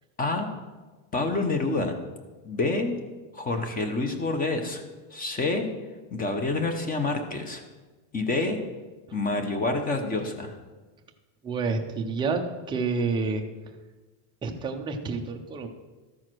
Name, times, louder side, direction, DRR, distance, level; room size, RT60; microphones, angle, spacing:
voice 1, 1.1-1.9 2.4-2.9 3.3-4.8 5.1-5.7 6.1-7.6 8.1-8.6 9.1-10.5, left 3 dB, 20° left, 6 dB, 0.8 m, -27 dB
voice 2, 11.4-13.4 14.4-15.7, right 4 dB, 10° right, 2 dB, 0.4 m, -29 dB
13.0 x 4.8 x 6.0 m, 1.3 s
cardioid pair, 165°, 47 cm